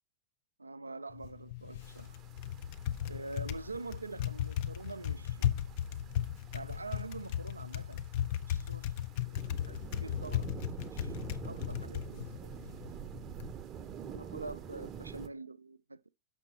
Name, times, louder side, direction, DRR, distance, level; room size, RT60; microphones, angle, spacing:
voice 1, 0.6-2.1 3.0-5.6 6.5-8.0 8.5-8.9 9.2-9.4 9.7-10.5 10.9-11.2 11.4-12.8 14.0-16.1, right 3 dB, 80° right, 0.3 m, -45 dB
Typing, 1.1-13.5, left 11 dB, 50° left, 0.5 m, -37 dB
sound 1, 1.8-15.3, right 8 dB, 30° right, 0.6 m, -48 dB
6.7 x 5.9 x 4.4 m
figure-of-eight pair, 90°, 0 cm